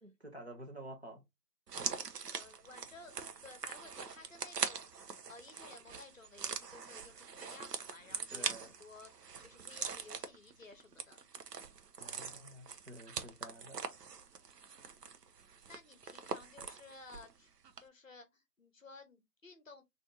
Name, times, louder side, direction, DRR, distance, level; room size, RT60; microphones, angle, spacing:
voice 1, 0.0-1.2 8.3-8.7 12.0-13.8, right 1 dB, 45° right, 0.8 m, -50 dB
sound 1, 1.7-17.4 17.6-17.8, right 6 dB, 80° right, 0.6 m, -43 dB
voice 2, 2.2-3.1 3.4-9.1 9.4-11.2 15.7-17.5 17.8-19.8, left 3 dB, 55° left, 0.7 m, -55 dB
2.7 x 2.6 x 3.6 m
figure-of-eight pair, 165°, 48 cm